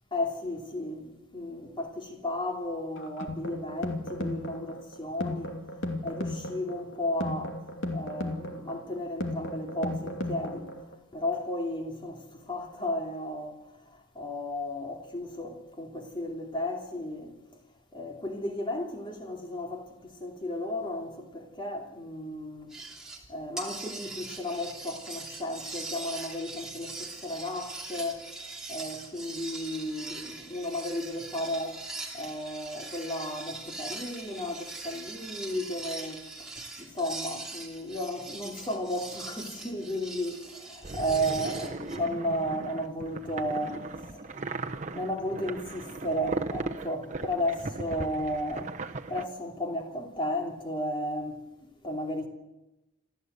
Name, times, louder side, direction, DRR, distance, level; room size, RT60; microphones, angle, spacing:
voice 1, 0.1-5.5 6.0-7.6 7.9-10.7 11.1-13.6 14.1-17.3 17.9-22.7 23.3-28.2 28.7-31.8 32.1-36.2 36.8-44.2 44.9-48.7 49.1-51.4 51.8-52.3, left 1 dB, 25° left, 2.9 m, -34 dB
sound 1, 3.0-10.9, left 1 dB, 65° left, 2.6 m, -35 dB
sound 2, 22.7-23.3 23.6-42.0, right 3 dB, 5° right, 2.8 m, -42 dB
sound 3, 40.8-49.2, right 2 dB, 35° right, 1.0 m, -37 dB
27.0 x 14.0 x 8.2 m
head